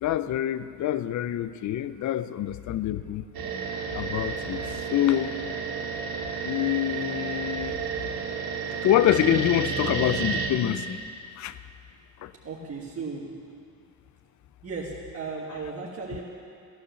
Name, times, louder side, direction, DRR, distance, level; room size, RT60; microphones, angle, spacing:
voice 1, 0.0-3.2 3.9-4.6 4.9-5.4 6.4-7.7 8.7-11.0 11.4-11.5 12.2-12.3, left 12 dB, 55° left, 14 dB, 0.6 m, -26 dB
sound 1, 3.3-10.5, right 5 dB, 80° right, 2.0 m, -31 dB
voice 2, 12.4-13.3 14.6-16.2, right 4 dB, 40° right, -3 dB, 1.8 m, -36 dB
14.5 x 10.0 x 7.0 m, 2.3 s
cardioid pair, 125°, 36 cm